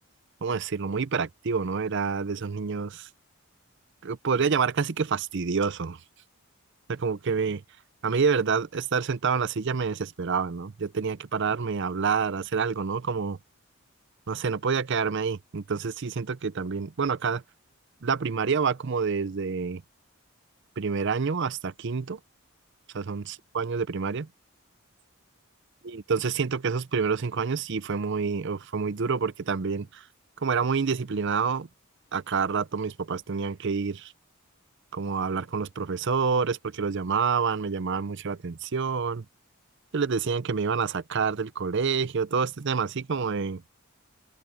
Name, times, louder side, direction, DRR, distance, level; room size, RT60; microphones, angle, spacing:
voice 1, 0.4-3.1 4.0-6.0 6.9-7.6 8.0-13.4 14.3-17.4 18.0-19.8 20.8-22.2 22.9-24.3 25.8-30.0 30.4-31.7 32.1-34.1 34.9-39.2 39.9-43.6, right 5 dB, 55° right, 0.6 m, -28 dB
head